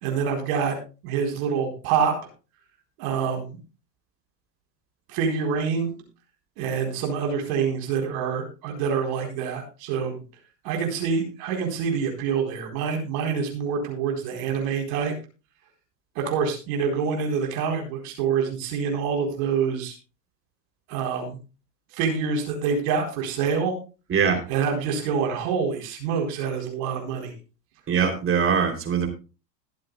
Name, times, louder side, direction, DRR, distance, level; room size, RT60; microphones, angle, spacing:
voice 1, 0.0-0.7 1.0-2.1 3.0-3.6 5.1-5.9 6.6-10.2 10.6-15.1 16.2-19.9 20.9-21.4 21.9-23.8 24.5-27.3, right 6 dB, 55° right, 2 dB, 4.3 m, -26 dB
voice 2, 27.9-29.1, right 7 dB, 25° right, 3 dB, 3.4 m, -22 dB
21.5 x 7.8 x 2.4 m, 0.33 s
hypercardioid pair, 100°, 50 cm